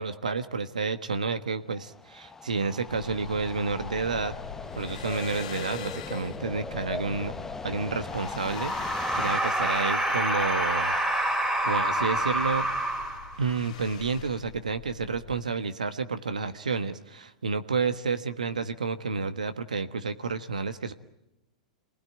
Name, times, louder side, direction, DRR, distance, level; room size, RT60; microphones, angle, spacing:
voice 1, 0.0-4.3 4.8-7.3 7.6-8.7 9.1-10.9 11.6-12.7 13.4-20.9, right 4 dB, 80° right, 10 dB, 1.4 m, -30 dB
sound 1, 1.7-9.4, left 3 dB, 10° left, 1.2 m, -39 dB
sound 2, 2.9-15.5, left 9 dB, 60° left, 2.7 m, -43 dB
sound 3, 8.5-13.6, right 1 dB, 10° right, 3.2 m, -27 dB
27.5 x 20.0 x 9.0 m, 0.89 s
figure-of-eight pair, 100°, 4 cm